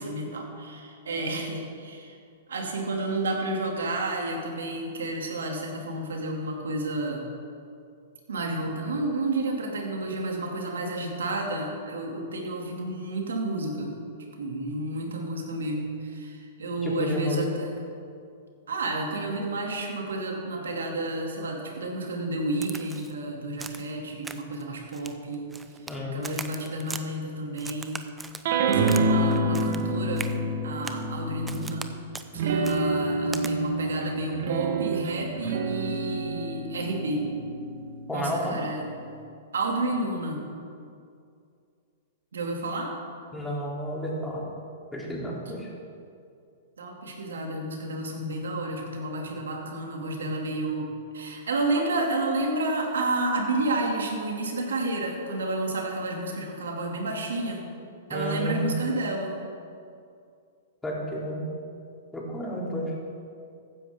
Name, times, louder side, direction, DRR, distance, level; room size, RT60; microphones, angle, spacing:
voice 1, 0.0-2.2 2.5-7.3 8.3-14.0 14.4-17.7 18.7-25.5 25.8-28.0 28.6-30.3 30.6-31.9 32.3-37.3 38.1-38.8 39.5-40.4 42.3-42.9 46.8-57.7 58.1-59.3, right 2 dB, 85° right, 0 dB, 2.4 m, -31 dB
voice 2, 16.8-17.4 25.9-26.2 38.1-38.6 43.3-44.4 44.9-45.7 58.1-58.7 60.8-61.4 62.1-62.9, equal, 10° left, -5 dB, 3.1 m, -31 dB
Crack, 22.6-23.1 23.6-23.9 24.2-24.6 24.9-26.0 26.2-27.0 27.6-29.1 29.3-29.9 30.2-30.3 30.8-31.1 31.5-31.9 32.1-32.3 32.6-32.8 33.3-33.5, right 4 dB, 10° right, 0.6 m, -39 dB
sound 1, 28.4-31.8 32.3-39.1, right 2 dB, 60° right, 1.3 m, -28 dB
15.0 x 10.0 x 3.6 m, 2.4 s
hypercardioid pair, 125°, 0 cm